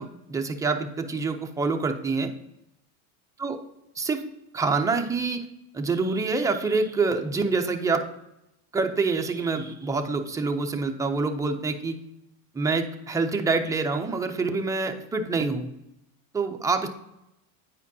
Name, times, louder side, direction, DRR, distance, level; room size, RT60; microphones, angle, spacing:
voice 1, 0.0-2.3 3.4-3.6 4.0-4.2 4.5-5.5 5.7-8.1 8.7-12.0 12.5-15.7 16.3-16.9, right 4 dB, 10° right, 4 dB, 0.4 m, -26 dB
9.1 x 5.0 x 2.7 m, 0.86 s
supercardioid pair, 120°, 46 cm